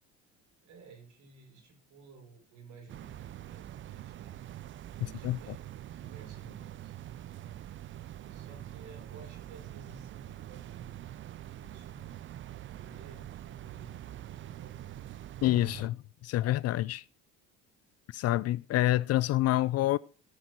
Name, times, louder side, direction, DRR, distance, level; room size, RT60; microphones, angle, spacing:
voice 1, 0.6-4.4 5.0-5.7 6.0-6.9 8.2-11.0 11.5-12.2 12.7-15.1, right 4 dB, 60° right, 5.0 m, -54 dB
sound 1, 2.9-15.9, right 12 dB, 35° right, 0.5 m, -45 dB
voice 2, 15.4-16.0 16.2-17.0 18.1-20.0, left 15 dB, 50° left, 0.4 m, -27 dB
16.5 x 6.5 x 4.4 m
hypercardioid pair, 70°, 34 cm